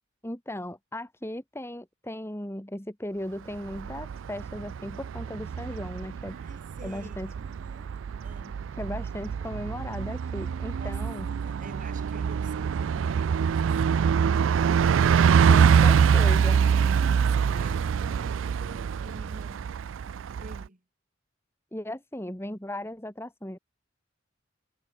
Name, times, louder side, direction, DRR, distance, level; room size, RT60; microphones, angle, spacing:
voice 1, 0.2-6.4 6.8-7.3 8.8-11.3 15.5-16.6 21.7-23.6, left 1 dB, 15° left, 2.6 m, -37 dB
Bus, 3.6-20.6, right 7 dB, 85° right, 0.3 m, -25 dB
voice 2, 6.3-8.6 10.8-11.0 11.4-14.1 16.4-19.7 20.4-20.8, right 2 dB, 45° right, 3.0 m, -48 dB
head